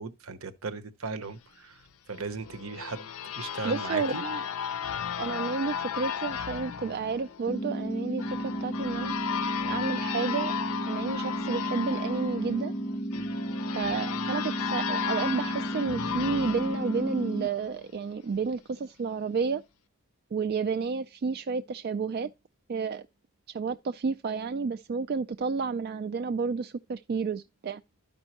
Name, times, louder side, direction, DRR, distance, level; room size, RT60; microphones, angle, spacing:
voice 1, 0.0-1.7 2.1-3.1 3.3-4.2, right 4 dB, 70° right, 0.9 m, -37 dB
sound 1, 2.1-17.8, left 8 dB, 85° left, 0.5 m, -35 dB
voice 2, 3.6-4.5 5.2-9.1 9.7-10.5 10.9-12.7 13.8-19.6 20.3-22.3 22.7-23.1 23.5-27.8, right 5 dB, 45° right, 0.3 m, -31 dB
sound 2, 7.5-17.5, right 1 dB, 30° left, 0.6 m, -33 dB
12.0 x 5.4 x 2.9 m
head